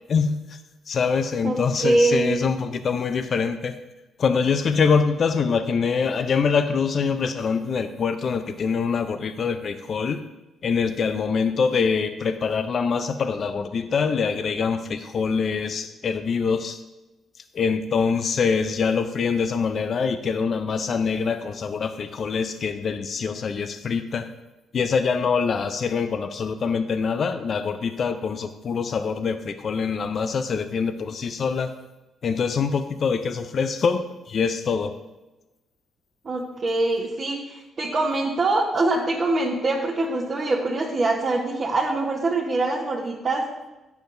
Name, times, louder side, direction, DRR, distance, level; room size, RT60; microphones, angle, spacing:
voice 1, 0.9-3.7 4.2-10.2 10.6-16.8 17.5-24.3 24.7-31.7 32.2-35.0, left 5 dB, 50° left, 9 dB, 0.5 m, -24 dB
voice 2, 1.4-2.4 36.2-43.4, right 2 dB, 45° right, -5 dB, 1.1 m, -24 dB
9.4 x 7.0 x 2.6 m, 1.0 s
cardioid pair, 90°, 0 cm